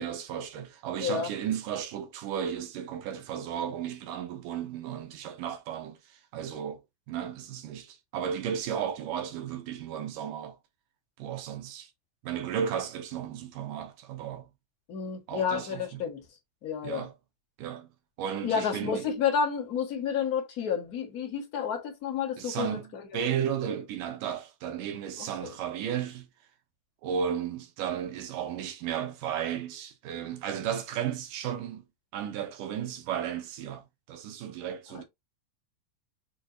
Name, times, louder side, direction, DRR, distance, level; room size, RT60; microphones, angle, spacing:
voice 1, 0.0-6.0 6.3-6.8 7.1-10.6 11.2-11.9 12.2-14.5 15.3-16.0 16.8-17.1 17.6-17.9 18.2-19.0 22.4-22.9 23.1-26.3 27.0-31.8 32.1-35.0, right 9 dB, 75° right, 2.3 m, -34 dB
voice 2, 1.0-1.3 14.9-16.2 16.6-17.1 18.4-23.2 25.2-25.5 34.9-35.0, left 7 dB, 50° left, 1.0 m, -30 dB
6.4 x 2.8 x 2.7 m
omnidirectional pair, 4.2 m